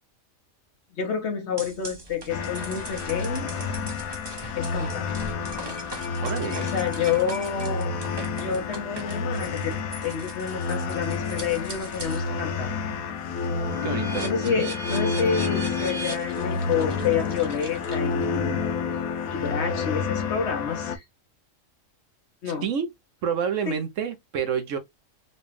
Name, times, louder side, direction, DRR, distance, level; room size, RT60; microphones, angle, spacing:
voice 1, 1.0-3.5 4.6-5.1 6.6-7.9 8.3-12.8 14.2-18.7 19.3-21.0 22.4-22.7, left 6 dB, 55° left, 1.1 m, -29 dB
sound 1, 1.6-12.3 12.7-18.3, right 2 dB, 20° right, 0.7 m, -40 dB
sound 2, 2.3-21.0, left 5 dB, 85° left, 1.1 m, -30 dB
voice 2, 6.2-6.7 13.8-14.7 22.4-22.9 23.2-24.8, right 7 dB, 65° right, 1.0 m, -29 dB
4.1 x 2.3 x 3.0 m
omnidirectional pair, 1.5 m